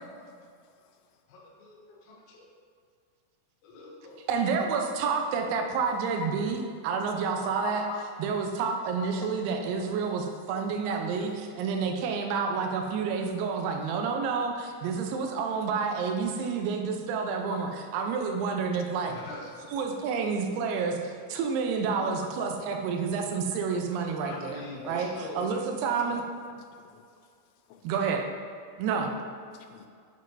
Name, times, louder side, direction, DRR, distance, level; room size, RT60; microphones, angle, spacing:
voice 1, 1.3-2.5 3.6-4.2 19.0-19.7 24.2-25.6, left 2 dB, 60° left, -5 dB, 2.2 m, -44 dB
voice 2, 4.3-7.8 8.2-14.5 14.8-19.1 19.7-26.2 27.8-28.2 28.8-29.1, right 5 dB, 80° right, 3 dB, 2.3 m, -29 dB
voice 3, 5.9-6.5 7.4-8.1 9.0-9.9 17.5-17.6 18.3-18.9 22.1-22.8 23.9-25.0 25.8-27.0 27.7-27.8 29.5-29.9, left 7 dB, 85° left, 5 dB, 2.9 m, -43 dB
7.5 x 7.1 x 2.6 m, 2.2 s
omnidirectional pair, 5.2 m